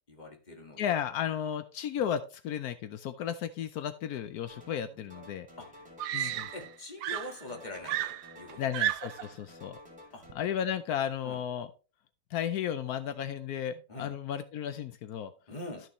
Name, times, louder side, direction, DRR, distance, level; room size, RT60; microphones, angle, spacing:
voice 1, 0.1-1.0 2.0-2.1 5.6-5.7 6.2-8.7 10.1-10.2 11.2-11.4 13.9-14.2 15.5-15.9, left 2 dB, 20° left, 3 dB, 1.6 m, -44 dB
voice 2, 0.8-5.5 6.1-6.5 8.6-9.8 10.3-11.7 12.3-15.3, left 9 dB, 85° left, 11 dB, 0.8 m, -34 dB
sound 1, 4.4-4.8 5.1-6.8 7.1-8.8 9.1-10.3, left 1 dB, 5° right, 3.0 m, -52 dB
Screaming, 5.2-5.3 6.0-6.7 7.0-9.3 10.3-10.6, right 13 dB, 70° right, 1.3 m, -33 dB
13.0 x 6.2 x 3.1 m, 0.34 s
omnidirectional pair, 2.3 m